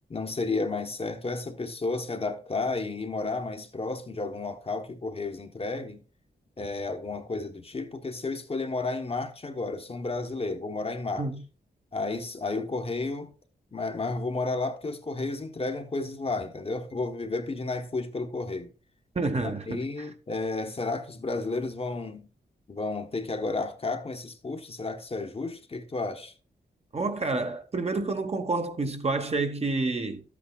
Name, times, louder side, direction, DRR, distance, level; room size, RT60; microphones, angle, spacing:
voice 1, 0.1-6.0 6.6-11.3 11.9-13.3 13.7-18.7 19.4-22.3 22.7-26.3, left 3 dB, 35° left, 1.0 m, -32 dB
voice 2, 19.1-20.1 26.9-30.2, right 3 dB, 35° right, 1.1 m, -29 dB
12.5 x 8.5 x 2.3 m
wide cardioid pair, 115°, 18 cm